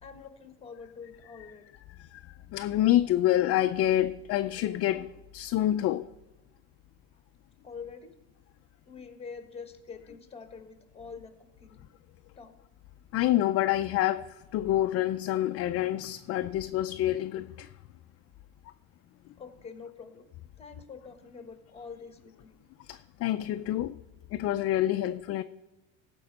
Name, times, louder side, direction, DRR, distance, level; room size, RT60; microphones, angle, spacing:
voice 1, 0.0-1.6 7.6-8.1 8.9-11.8 12.4-12.5 19.4-20.3 20.6-22.6, left 5 dB, 15° left, 1.4 m, -45 dB
voice 2, 2.0-5.1 5.3-6.1 13.1-17.7 22.8-23.9 24.3-25.4, left 13 dB, 45° left, 0.4 m, -27 dB
14.5 x 5.3 x 5.4 m
cardioid pair, 130°, 34 cm